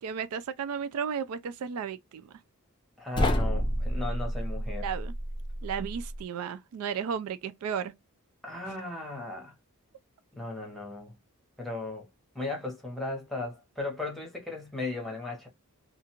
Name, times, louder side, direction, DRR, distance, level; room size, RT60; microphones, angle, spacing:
voice 1, 0.0-2.3 4.8-5.1 5.6-7.9, right 7 dB, 75° right, 0.3 m, -34 dB
voice 2, 3.0-4.9 8.4-9.5 10.3-11.1 11.6-12.0 12.3-15.5, left 2 dB, ahead, 0.9 m, -36 dB
sound 1, 3.1-6.2, equal, 20° left, 0.4 m, -30 dB
2.4 x 2.3 x 2.9 m
head